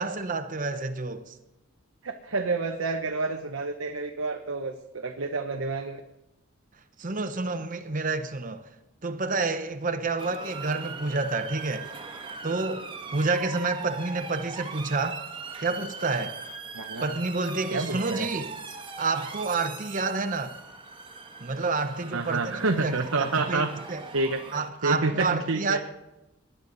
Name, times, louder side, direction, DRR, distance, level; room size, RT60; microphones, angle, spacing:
voice 1, 0.0-1.4 7.0-8.6 9.0-11.9 12.4-12.8 13.1-15.2 15.6-16.4 17.0-18.5 19.0-20.6 21.4-24.0 24.5-25.8, right 3 dB, 40° right, 0.9 m, -29 dB
voice 2, 2.0-6.0 16.7-17.1 17.7-18.3 22.1-23.7 24.1-24.4 24.8-25.8, right 3 dB, 90° right, 1.0 m, -28 dB
Motor vehicle (road) / Siren, 10.2-24.7, right 4 dB, 25° right, 1.3 m, -40 dB
19.5 x 10.5 x 4.0 m
head